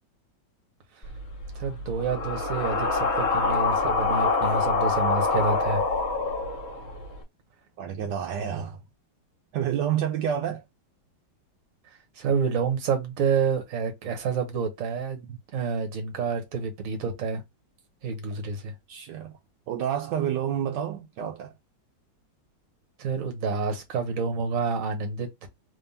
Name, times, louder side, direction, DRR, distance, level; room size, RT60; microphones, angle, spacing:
sound 1, 1.0-7.2, left 3 dB, 35° left, 1.4 m, -26 dB
voice 1, 1.5-5.8 12.2-17.4 18.0-18.7 23.0-25.5, right 5 dB, 50° right, 1.3 m, -28 dB
voice 2, 7.8-8.8 9.5-10.6 15.3-15.4 18.9-19.3 19.7-21.5, right 9 dB, 75° right, 1.2 m, -29 dB
3.5 x 3.5 x 2.7 m
omnidirectional pair, 2.0 m